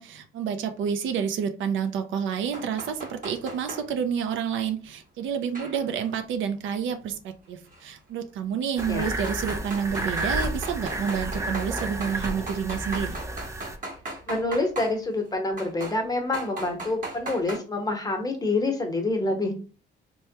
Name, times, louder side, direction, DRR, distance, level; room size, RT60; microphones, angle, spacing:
voice 1, 0.0-13.2, right 7 dB, 75° right, 8 dB, 0.5 m, -29 dB
sound 1, 2.5-3.8 5.5-6.1 7.7-7.8 8.8-14.9 15.6-16.0 16.3-17.6, right 2 dB, 40° right, 1.1 m, -37 dB
sound 2, 8.8-13.8, right 1 dB, 15° right, 0.4 m, -31 dB
voice 2, 14.3-19.6, left 2 dB, 20° left, 3 dB, 0.9 m, -27 dB
3.2 x 2.2 x 2.8 m, 0.36 s
cardioid pair, 90°, 20 cm